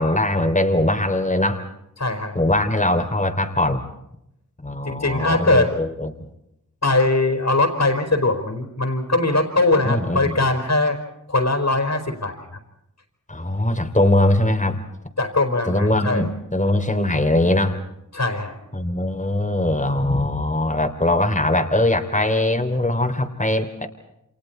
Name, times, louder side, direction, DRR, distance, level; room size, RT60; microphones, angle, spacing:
voice 1, 0.0-1.6 2.3-3.8 4.6-6.2 9.8-10.3 13.3-14.8 15.6-17.8 18.7-23.9, left 1 dB, 25° left, 5 dB, 3.2 m, -21 dB
voice 2, 2.0-2.4 4.8-5.7 6.8-11.0 11.3-12.6 15.2-16.3 18.1-18.6, left 2 dB, 55° left, 4 dB, 4.6 m, -21 dB
29.5 x 27.5 x 4.4 m, 0.82 s
wide cardioid pair, 65°, 32 cm